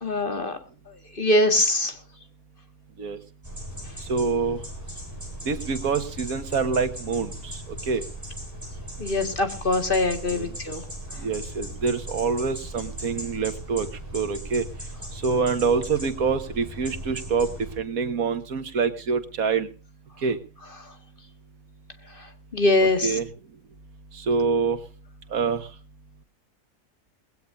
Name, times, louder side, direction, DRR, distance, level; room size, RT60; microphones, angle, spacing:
voice 1, 0.0-0.6 1.1-1.9 9.0-10.8 22.5-23.2, left 2 dB, 40° left, 7 dB, 2.1 m, -23 dB
sound 1, 3.4-17.8, right 1 dB, 10° right, 7.9 m, -38 dB
voice 2, 4.1-4.6 5.5-8.0 10.3-10.5 11.2-13.9 14.1-14.6 15.2-17.5 17.8-19.7 20.2-20.4 23.0-23.3 24.1-24.8 25.3-25.7, right 5 dB, 80° right, 10 dB, 1.9 m, -26 dB
20.0 x 17.0 x 2.6 m, 0.35 s
omnidirectional pair, 1.5 m